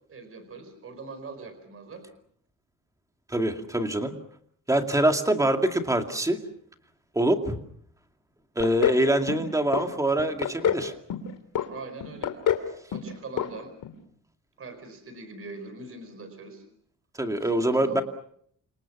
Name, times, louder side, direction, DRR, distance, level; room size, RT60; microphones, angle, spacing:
voice 1, 0.1-2.0 11.7-12.3 12.9-13.7 14.6-16.6 17.4-18.0, right 3 dB, 40° right, 9 dB, 4.7 m, -42 dB
voice 2, 3.3-4.1 4.7-6.4 7.1-7.6 8.6-10.9 17.2-18.0, right 1 dB, 10° right, 5 dB, 2.3 m, -24 dB
sound 1, 8.6-9.0 9.3-9.8 10.2-10.8 11.1-11.7 12.0-12.7 12.9-13.1 13.4-13.5 13.8-13.9, left 9 dB, 75° left, 2.8 m, -26 dB
29.5 x 27.0 x 6.1 m, 0.66 s
wide cardioid pair, 175°, 32 cm